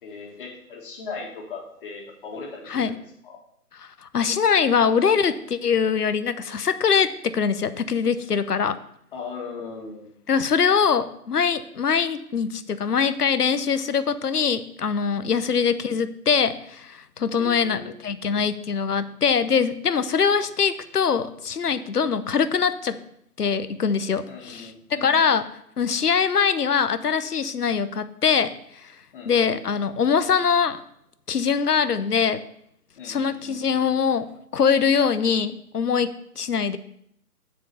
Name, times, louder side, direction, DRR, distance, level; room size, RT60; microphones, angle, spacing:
voice 1, 0.0-2.9 3.2-3.4 9.1-10.1 15.2-15.4 17.4-17.9 24.3-25.4 29.1-29.6 33.0-33.6, left 4 dB, 35° left, 0 dB, 2.0 m, -38 dB
voice 2, 3.8-8.8 10.3-23.0 23.4-25.4 25.8-28.5 29.2-30.8 31.3-32.4 33.0-34.2 34.5-36.1 36.4-36.8, left 6 dB, 75° left, 13 dB, 0.8 m, -23 dB
7.5 x 4.8 x 6.8 m, 0.73 s
figure-of-eight pair, 140°, 46 cm